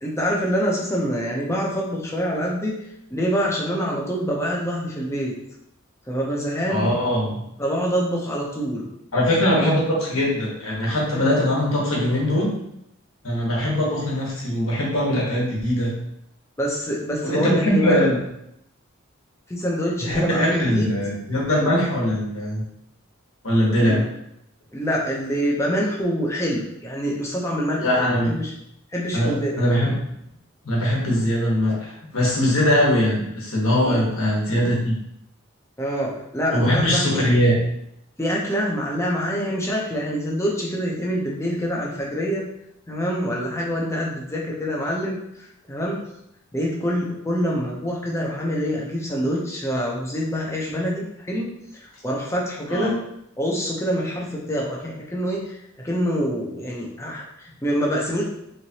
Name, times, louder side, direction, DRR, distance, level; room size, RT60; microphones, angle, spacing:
voice 1, 0.0-2.7 3.1-5.3 6.1-6.9 7.6-8.9 16.6-18.0 19.5-20.9 23.8-24.0 24.7-28.5 28.9-29.6 33.7-34.0 35.8-37.2 38.2-42.4 42.9-46.0 46.5-51.5 51.7-52.9 53.4-58.2, equal, 15° left, -3 dB, 0.7 m, -25 dB
voice 2, 6.7-7.4 9.1-12.5 13.2-15.9 17.2-18.2 20.0-22.6 23.4-24.0 27.8-28.4 29.1-30.0 30.6-35.0 36.5-37.6 52.7-52.9, equal, 80° left, -4 dB, 1.3 m, -21 dB
3.5 x 3.2 x 2.8 m, 0.78 s
head